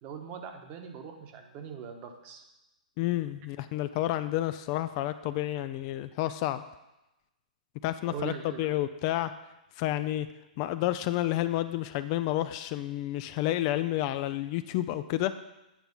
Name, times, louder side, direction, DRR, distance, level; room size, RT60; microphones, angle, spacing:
voice 1, 0.0-2.4 8.0-8.8, right 6 dB, 35° right, 5 dB, 1.1 m, -41 dB
voice 2, 3.0-6.6 7.8-8.3 8.6-9.3 9.8-10.3 10.6-15.3, left 14 dB, 40° left, 12 dB, 0.4 m, -30 dB
8.7 x 4.6 x 5.4 m, 0.97 s
hypercardioid pair, 125°, 5 cm